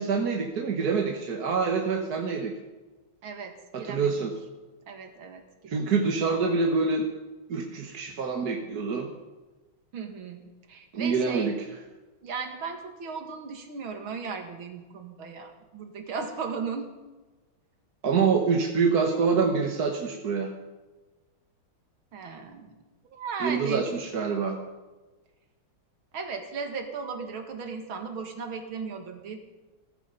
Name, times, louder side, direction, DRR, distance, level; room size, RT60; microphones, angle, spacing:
voice 1, 0.0-2.5 3.7-4.3 5.7-7.1 7.5-9.1 10.9-11.5 18.0-20.5 23.4-24.6, right 5 dB, 50° right, 2 dB, 1.7 m, -26 dB
voice 2, 3.2-4.1 4.9-5.9 9.9-11.6 12.2-16.9 22.1-22.8 23.1-23.9 26.1-29.4, right 5 dB, 80° right, 5 dB, 2.6 m, -36 dB
16.0 x 14.5 x 5.3 m, 1.2 s
omnidirectional pair, 2.2 m